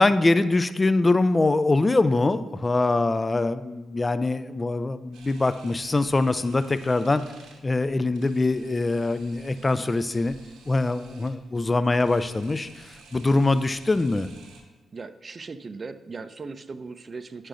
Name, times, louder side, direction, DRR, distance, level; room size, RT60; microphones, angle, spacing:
voice 1, 0.0-7.2 7.6-10.4 10.7-14.3, left 2 dB, 30° left, 13 dB, 0.4 m, -23 dB
Camera, 5.1-14.6, right 4 dB, 75° right, 0.9 m, -52 dB
voice 2, 14.9-17.5, right 4 dB, 40° right, 12 dB, 0.4 m, -38 dB
9.0 x 6.3 x 2.5 m, 1.2 s
hypercardioid pair, 40°, 0 cm